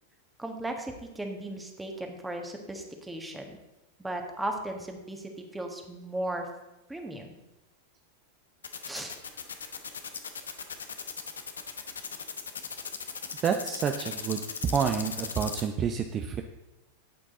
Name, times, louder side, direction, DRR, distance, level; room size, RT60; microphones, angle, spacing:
voice 1, 0.4-3.6 4.0-6.5 6.9-7.4 8.8-10.1, right 1 dB, 10° right, 3 dB, 1.6 m, -37 dB
sound 1, 8.6-15.6, left 6 dB, 80° left, 1.0 m, -37 dB
voice 2, 13.4-14.4 14.7-16.4, right 7 dB, 30° right, 5 dB, 0.7 m, -28 dB
12.0 x 8.4 x 3.8 m, 0.99 s
hypercardioid pair, 95°, 0 cm